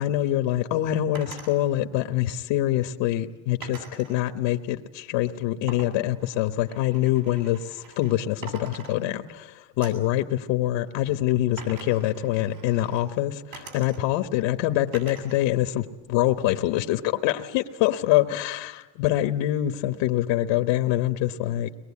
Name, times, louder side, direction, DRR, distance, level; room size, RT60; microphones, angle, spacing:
voice 1, 0.0-21.7, left 14 dB, 75° left, 7 dB, 1.3 m, -25 dB
sound 1, 1.1-1.6 3.6-4.2 5.7-8.2 8.4-9.4 9.8-10.1 11.6-13.1 13.5-14.3 14.9-15.5 15.8-16.6, right 5 dB, 65° right, 7.9 m, -44 dB
23.0 x 21.0 x 8.6 m, 1.2 s
supercardioid pair, 100°, 50 cm